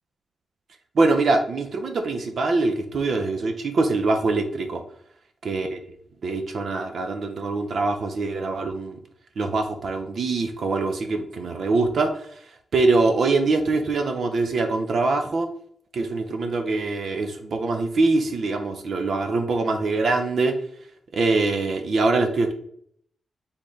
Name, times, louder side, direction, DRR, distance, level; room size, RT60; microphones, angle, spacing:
voice 1, 1.0-4.8 5.4-5.8 6.2-9.0 9.4-12.4 12.7-15.5 15.9-20.5 21.1-22.5, right 3 dB, 60° right, 5 dB, 0.5 m, -23 dB
4.3 x 3.6 x 3.1 m, 0.65 s
wide cardioid pair, 150°, 0 cm